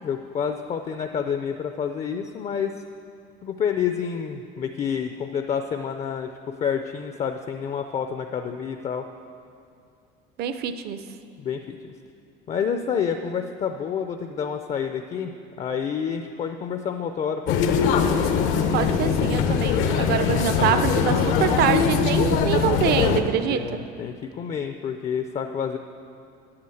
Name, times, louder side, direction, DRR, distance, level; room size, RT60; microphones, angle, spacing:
voice 1, 0.0-2.7 3.4-9.0 11.4-11.9 12.5-15.3 15.6-17.8 23.5-25.8, left 7 dB, 35° left, 6 dB, 0.5 m, -28 dB
voice 2, 10.4-11.1 18.7-23.8, right 9 dB, 50° right, 11 dB, 0.6 m, -25 dB
sound 1, 17.5-23.2, left 6 dB, 75° left, 0.9 m, -21 dB
9.1 x 8.6 x 7.8 m, 2.5 s
cardioid pair, 135°, 20 cm